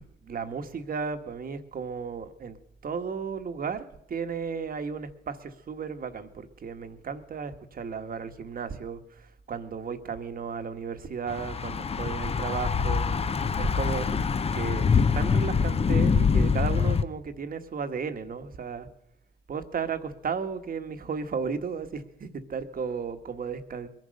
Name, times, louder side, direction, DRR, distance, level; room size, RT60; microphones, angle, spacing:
voice 1, 0.0-2.6 2.8-13.1 13.6-14.1 14.5-18.9 19.5-23.9, right 6 dB, 45° right, 8 dB, 1.4 m, -34 dB
Thunder / Bicycle, 11.3-17.0, left 5 dB, 30° left, 0.7 m, -25 dB
21.0 x 10.5 x 6.4 m, 0.80 s
cardioid pair, 90°, 20 cm